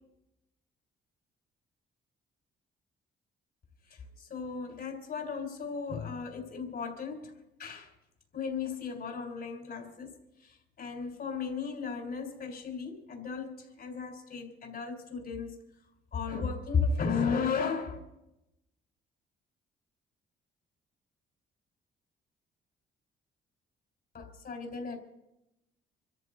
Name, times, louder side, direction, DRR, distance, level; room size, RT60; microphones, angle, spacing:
voice 1, 3.9-7.3 7.6-7.9 8.3-15.6 16.1-18.0 24.1-25.0, left 5 dB, 55° left, 3.7 m, -35 dB
24.5 x 14.0 x 3.9 m
cardioid pair, 90°, 20 cm